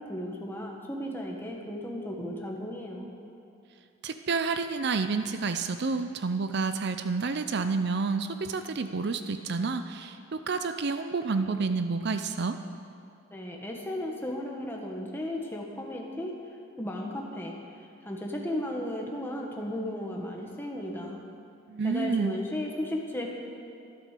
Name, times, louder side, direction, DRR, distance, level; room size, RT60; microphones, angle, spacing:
voice 1, 0.0-3.1 13.3-16.3 16.8-17.5 18.0-21.2 21.8-23.3, left 1 dB, 10° left, -1 dB, 1.5 m, -35 dB
voice 2, 4.0-12.6 21.7-22.3, right 4 dB, 50° right, 9 dB, 0.5 m, -29 dB
12.5 x 12.5 x 6.7 m, 2.5 s
head